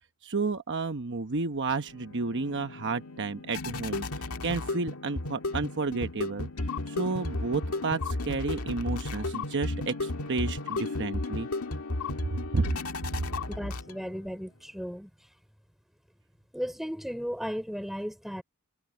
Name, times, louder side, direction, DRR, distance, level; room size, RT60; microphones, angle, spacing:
voice 1, 0.2-4.1 4.4-6.5 6.9-11.5 12.3-12.7, right 3 dB, 55° right, 1.0 m, -31 dB
sound 1, 1.4-14.2, left 2 dB, 85° left, 1.8 m, -34 dB
voice 2, 13.4-15.1 16.5-18.4, equal, ahead, 4.4 m, -35 dB
head